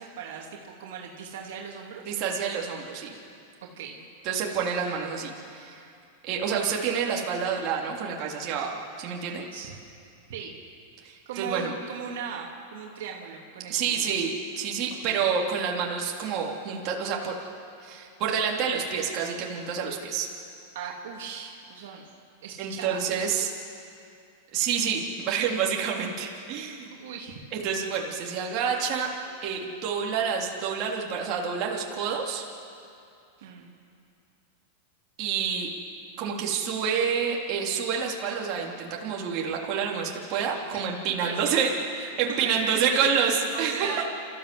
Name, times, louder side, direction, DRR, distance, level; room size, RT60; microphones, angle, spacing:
voice 1, 0.0-2.1 3.6-4.0 9.5-9.7 10.3-10.5 11.2-14.1 15.0-15.2 20.7-22.1 22.4-23.1 27.0-27.5 33.4-33.7 41.2-43.1 43.5-44.0, right 7 dB, 70° right, -1 dB, 3.1 m, -38 dB
voice 2, 2.1-3.1 4.2-5.8 6.2-9.4 11.0-11.7 13.7-17.4 17.8-20.3 22.6-23.5 24.5-26.9 27.5-29.1 29.4-32.5 35.2-35.7 36.2-41.7 42.2-43.9, right 6 dB, 45° right, -2 dB, 3.4 m, -28 dB
28.0 x 14.5 x 7.9 m, 2.5 s
hypercardioid pair, 125°, 0 cm